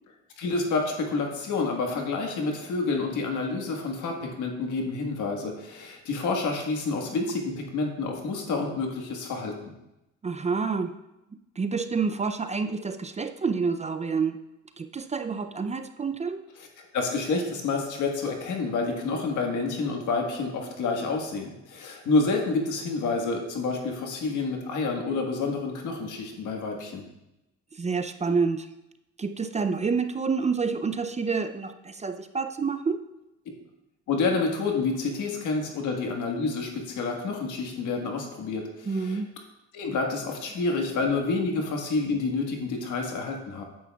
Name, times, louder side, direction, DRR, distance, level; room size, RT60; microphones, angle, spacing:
voice 1, 0.4-9.5 16.9-27.1 34.1-39.2 39.7-43.6, left 3 dB, 75° left, 2 dB, 1.5 m, -28 dB
voice 2, 10.2-10.9 11.6-14.4 14.8-16.4 27.7-28.7 29.2-33.0 38.9-39.3 41.5-41.6, right 5 dB, 25° right, 9 dB, 0.4 m, -28 dB
9.4 x 8.0 x 2.3 m, 0.93 s
cardioid pair, 90°, 30 cm